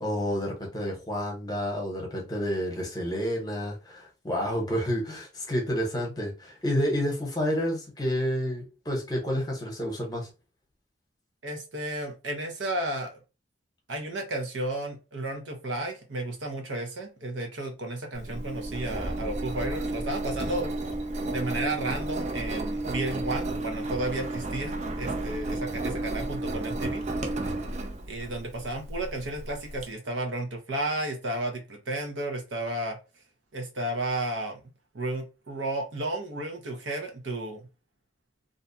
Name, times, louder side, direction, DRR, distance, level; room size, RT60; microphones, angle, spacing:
voice 1, 0.0-10.3, equal, 20° left, 0.9 m, -29 dB
voice 2, 11.4-13.2 13.9-20.7 21.3-27.0 28.0-33.0 33.5-34.6 34.9-37.7, right 1 dB, 85° right, 0.8 m, -33 dB
Engine, 18.1-29.8, right 2 dB, 35° right, 0.4 m, -32 dB
2.5 x 2.2 x 2.6 m
head